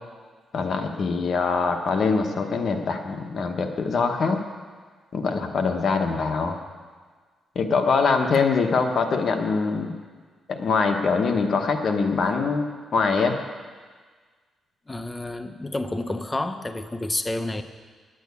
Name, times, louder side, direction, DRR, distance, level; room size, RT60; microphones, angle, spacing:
voice 1, 0.5-4.4 5.1-6.6 7.5-10.0 10.5-13.3, left 4 dB, 55° left, 5 dB, 1.1 m, -23 dB
voice 2, 14.9-17.6, left 2 dB, 15° left, 8 dB, 0.7 m, -29 dB
10.5 x 9.0 x 8.3 m, 1.5 s
cardioid pair, 110°, 0 cm